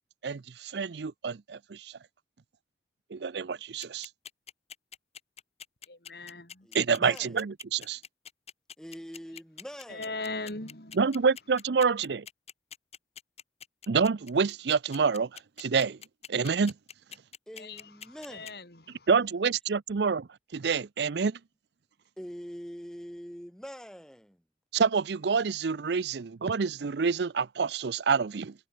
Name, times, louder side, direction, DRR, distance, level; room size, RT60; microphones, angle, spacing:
voice 1, 0.2-1.9 3.1-4.1 6.7-8.0 11.0-12.2 13.9-15.3 15.6-16.0 16.3-16.7 19.1-20.2 20.5-21.4 24.7-28.5, right 5 dB, 75° right, 0.5 m, -27 dB
sound 1, 3.8-18.5, left 8 dB, 35° left, 3.8 m, -45 dB
voice 2, 5.9-6.7 9.9-11.0 17.6-19.1, left 3 dB, 60° left, 3.7 m, -40 dB
voice 3, 6.6-7.4 8.8-10.2 17.5-18.6 22.2-24.4, equal, 5° left, 2.9 m, -44 dB
head